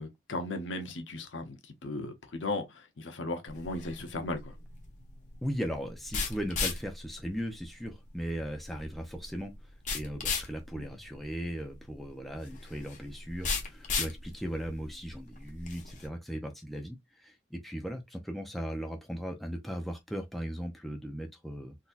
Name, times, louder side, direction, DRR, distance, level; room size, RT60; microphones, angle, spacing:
voice 1, 0.0-4.5 10.7-10.8, left 2 dB, 85° left, 0.9 m, -36 dB
sound 1, 3.5-16.1, left 4 dB, 40° left, 0.9 m, -37 dB
voice 2, 5.4-9.5 9.9-21.8, equal, ahead, 0.5 m, -37 dB
3.9 x 2.8 x 2.4 m
head